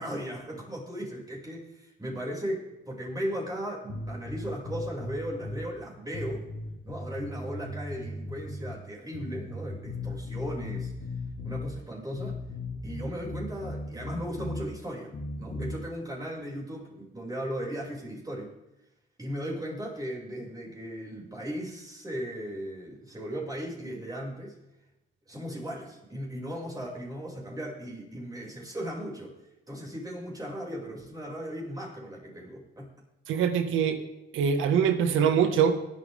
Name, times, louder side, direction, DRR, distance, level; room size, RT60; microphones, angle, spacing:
voice 1, 0.0-6.5 6.8-10.9 11.4-12.4 12.8-18.5 19.2-24.5 25.3-29.3 29.7-32.9, equal, 20° right, -3 dB, 6.4 m, -37 dB
sound 1, 3.9-5.7 6.1-8.7 9.1-11.7 12.1-14.7 15.1-15.8, left 2 dB, 55° left, 3.4 m, -37 dB
voice 2, 33.3-34.0 34.3-35.8, right 7 dB, 90° right, 8 dB, 1.7 m, -23 dB
24.0 x 9.5 x 3.6 m, 0.97 s
cardioid pair, 90°, 20 cm